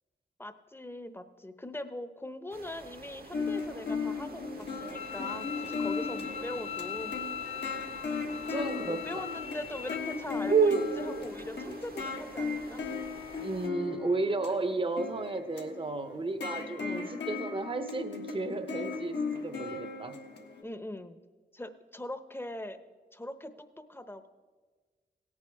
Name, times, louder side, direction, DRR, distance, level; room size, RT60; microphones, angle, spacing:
voice 1, 0.4-4.4 4.7-7.2 8.5-12.8 16.8-17.1 20.6-21.2 21.5-22.8 23.1-23.5 23.9-24.3, left 1 dB, 10° left, 10 dB, 0.8 m, -41 dB
sound 1, 2.5-13.7, right 5 dB, 55° right, 0.9 m, -36 dB
sound 2, 3.3-20.6, left 4 dB, 70° left, 1.4 m, -37 dB
Bowed string instrument, 5.0-10.0, left 8 dB, 40° left, 0.4 m, -40 dB
voice 2, 8.5-9.2 13.4-20.2, right 2 dB, 30° right, 10 dB, 0.8 m, -34 dB
17.0 x 8.5 x 3.5 m, 1.4 s
cardioid pair, 55°, 18 cm